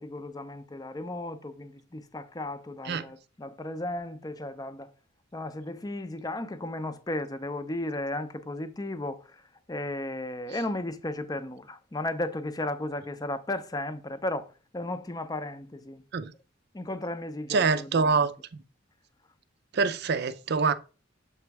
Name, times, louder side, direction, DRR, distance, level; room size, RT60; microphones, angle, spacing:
voice 1, 0.0-4.9 5.3-9.2 9.7-14.5 14.7-16.0 16.7-18.3, left 1 dB, 20° left, 0.5 m, -35 dB
voice 2, 17.5-18.3 19.7-20.7, right 5 dB, 55° right, 0.5 m, -25 dB
6.9 x 3.1 x 4.7 m
head